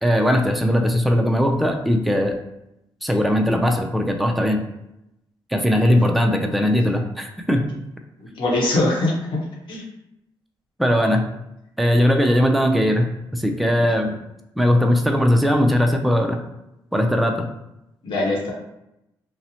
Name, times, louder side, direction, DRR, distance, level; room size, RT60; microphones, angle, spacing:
voice 1, 0.0-2.4 3.0-4.6 5.5-7.7 10.8-11.2 11.8-13.1 13.3-14.1 14.6-16.4 16.9-17.5, equal, ahead, 3 dB, 0.4 m, -19 dB
voice 2, 8.4-9.1 9.7-9.8 13.8-13.9 18.0-18.5, left 2 dB, 65° left, -2 dB, 0.9 m, -22 dB
2.8 x 2.0 x 2.7 m, 0.86 s
cardioid pair, 75°, 9 cm